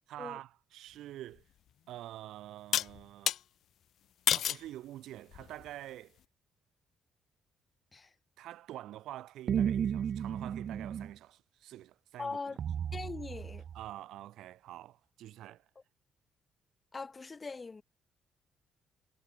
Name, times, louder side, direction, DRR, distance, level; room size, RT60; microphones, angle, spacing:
voice 1, 0.1-1.4 1.9-3.4 4.3-6.2 8.4-12.6 13.7-15.7, right 14 dB, 85° right, 4.3 m, -47 dB
sound 1, 1.4-1.5 2.7-3.4 4.3-4.7 5.3-5.7, left 11 dB, 70° left, 0.8 m, -30 dB
Wobble Telephone, 9.5-11.1 12.6-13.9, right 8 dB, 60° right, 0.5 m, -33 dB
voice 2, 12.2-12.6 12.9-13.6 16.9-17.8, left 4 dB, 30° left, 2.4 m, -41 dB
cardioid pair, 90°, 0 cm